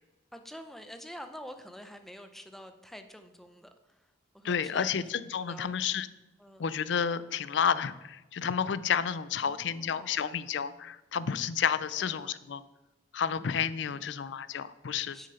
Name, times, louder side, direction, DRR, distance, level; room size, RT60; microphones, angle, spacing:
voice 1, 0.3-5.8 6.4-6.7 9.4-10.2 12.0-12.3 15.1-15.3, equal, ahead, 7 dB, 0.6 m, -48 dB
voice 2, 4.4-6.1 6.6-12.6 13.1-15.2, left 7 dB, 65° left, 16 dB, 0.4 m, -31 dB
7.6 x 6.5 x 5.7 m, 1.0 s
head